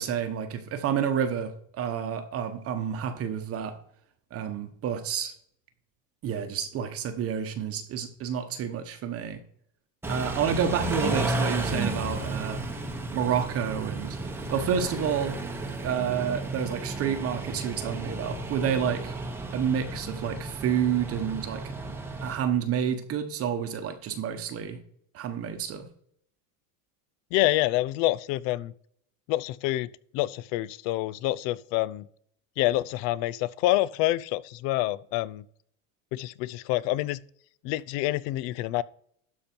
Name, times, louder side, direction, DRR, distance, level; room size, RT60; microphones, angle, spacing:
voice 1, 0.0-3.8 4.3-5.3 6.2-9.4 10.1-12.6 13.1-14.2 14.5-15.4 15.8-19.1 19.5-21.7 22.2-24.8 25.1-25.9, right 8 dB, 30° right, 1.0 m, -29 dB
Car / Idling / Accelerating revving vroom, 10.0-22.4, right 2 dB, 5° right, 0.9 m, -33 dB
voice 2, 27.3-28.7 29.3-32.1 32.6-35.4 36.1-37.2 37.6-38.8, left 16 dB, 40° left, 0.4 m, -27 dB
12.5 x 5.2 x 4.5 m
supercardioid pair, 140°, 45 cm